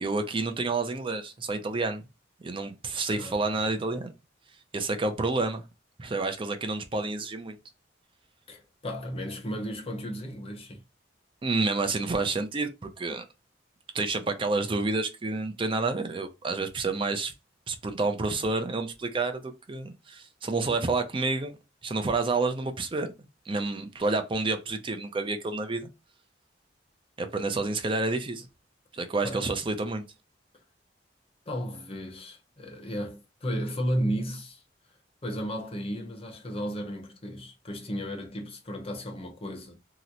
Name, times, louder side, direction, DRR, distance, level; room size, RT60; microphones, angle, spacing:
voice 1, 0.0-2.0 2.4-4.1 4.7-5.6 6.0-7.6 11.4-13.2 13.9-17.3 17.7-21.5 21.8-23.1 23.5-25.9 27.2-28.5 28.9-30.0, right 3 dB, 30° right, 0.5 m, -29 dB
voice 2, 3.1-3.4 8.5-10.8 29.2-29.5 31.5-34.6 35.2-39.8, equal, 30° left, 0.8 m, -34 dB
2.9 x 2.1 x 3.7 m
head